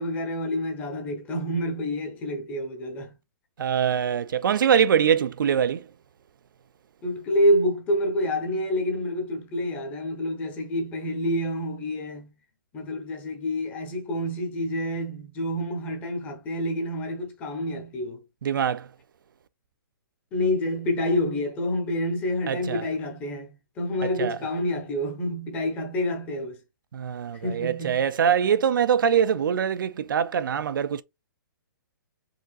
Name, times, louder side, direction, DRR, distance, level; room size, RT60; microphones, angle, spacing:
voice 1, 0.0-3.1 7.0-12.3 12.7-18.2 20.3-26.6 27.4-28.1, left 1 dB, 15° left, 0.9 m, -28 dB
voice 2, 3.6-5.8 18.4-18.9 22.5-22.9 24.0-24.4 26.9-31.0, right 8 dB, 70° right, 0.4 m, -23 dB
4.9 x 3.7 x 2.4 m
hypercardioid pair, 170°, 11 cm